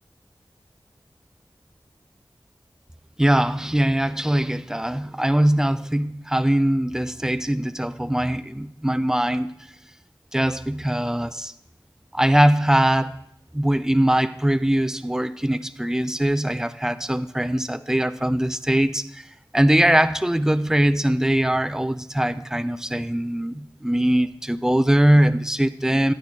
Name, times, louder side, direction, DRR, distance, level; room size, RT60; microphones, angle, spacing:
voice 1, 3.2-9.6 10.3-11.5 12.1-13.2 13.5-19.3 19.5-26.1, right 1 dB, 5° right, 12 dB, 0.4 m, -21 dB
9.4 x 9.0 x 4.0 m, 0.78 s
wide cardioid pair, 60°, 8 cm